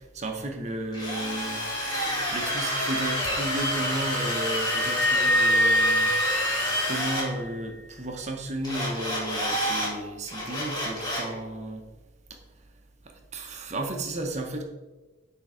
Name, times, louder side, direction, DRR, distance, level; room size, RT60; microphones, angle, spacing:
voice 1, 0.0-1.6 2.3-6.1 6.8-11.9 12.3-12.4 13.3-14.6, right 1 dB, 35° right, 3 dB, 0.8 m, -33 dB
Drill, 0.9-7.3 8.6-9.9 10.3-11.3, equal, 20° left, 2.2 m, -28 dB
sound 1, 4.6-7.3, equal, ahead, 0.3 m, -24 dB
8.5 x 3.6 x 4.9 m, 1.2 s
head